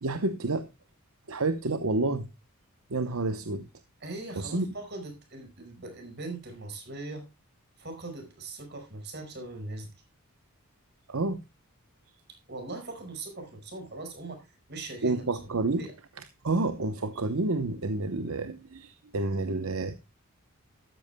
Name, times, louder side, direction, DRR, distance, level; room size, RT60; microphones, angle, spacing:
voice 1, 0.0-0.7 1.3-2.3 2.9-3.7 4.4-4.6 11.1-11.4 15.0-15.9 16.2-19.9, right 2 dB, 70° right, 0.9 m, -29 dB
voice 2, 4.0-7.2 7.8-9.9 12.5-15.2 15.8-15.9, right 2 dB, 50° right, 5.1 m, -40 dB
13.0 x 12.5 x 2.2 m
head